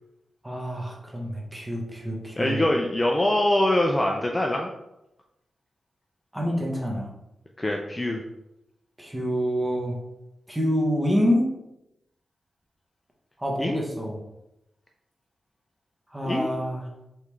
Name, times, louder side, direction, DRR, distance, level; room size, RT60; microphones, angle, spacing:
voice 1, 0.4-2.6 6.3-7.1 9.0-10.0 10.5-11.5 13.4-14.2 16.1-16.9, equal, 10° right, -2 dB, 0.9 m, -27 dB
voice 2, 2.4-4.7 7.6-8.2 13.6-13.8 16.2-16.5, left 1 dB, 20° left, 1 dB, 0.3 m, -24 dB
3.6 x 3.1 x 3.3 m, 0.89 s
wide cardioid pair, 120°, 0 cm